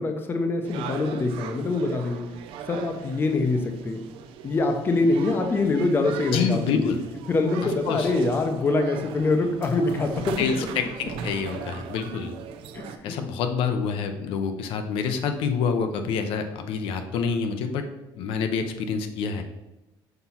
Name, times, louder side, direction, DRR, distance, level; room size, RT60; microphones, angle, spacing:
voice 1, 0.0-2.3 2.7-4.0 4.4-6.9 7.3-10.4 12.7-13.1, left 3 dB, 25° left, 5 dB, 0.6 m, -24 dB
sound 1, 0.6-13.0, right 8 dB, 80° right, 0.5 m, -39 dB
voice 2, 6.3-7.0 7.9-8.1 10.4-12.3 13.0-17.8 18.1-19.4, left 6 dB, 80° left, 7 dB, 0.6 m, -27 dB
5.8 x 2.9 x 5.6 m, 0.98 s
cardioid pair, 155°, 9 cm